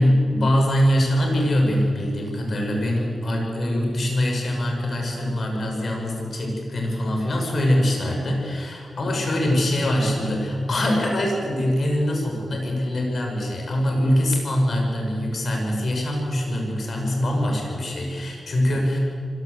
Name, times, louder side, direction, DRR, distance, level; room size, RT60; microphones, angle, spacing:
voice 1, 0.0-19.0, left 1 dB, 60° left, 1 dB, 5.9 m, -23 dB
25.0 x 15.5 x 8.1 m, 2.2 s
cardioid pair, 75°, 0 cm